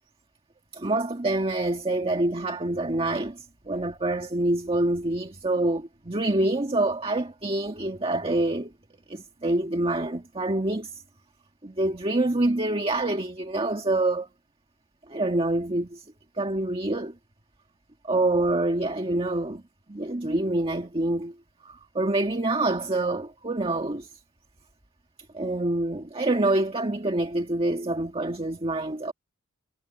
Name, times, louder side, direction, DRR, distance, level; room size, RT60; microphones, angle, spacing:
voice 1, 0.7-8.7 9.1-11.0 11.6-14.3 15.1-16.0 16.4-17.2 18.0-19.6 19.9-21.3 21.6-24.1 25.3-29.1, right 2 dB, 25° right, 1.7 m, -26 dB
head